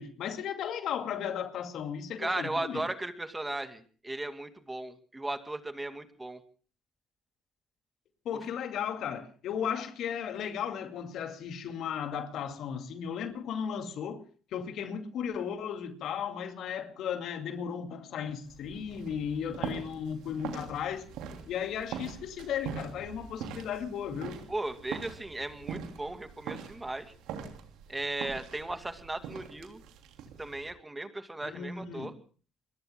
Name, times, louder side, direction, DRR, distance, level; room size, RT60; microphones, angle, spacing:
voice 1, 0.0-2.8 8.2-14.2 14.5-21.1 21.4-24.4 31.4-32.1, left 8 dB, 60° left, 2.4 m, -35 dB
voice 2, 2.2-6.4 8.3-8.4 24.5-27.1 27.9-29.8 30.4-32.1, right 2 dB, 15° right, 2.2 m, -36 dB
sound 1, 18.5-30.7, right 7 dB, 70° right, 3.0 m, -43 dB
29.0 x 22.0 x 2.3 m
hypercardioid pair, 55°, 0 cm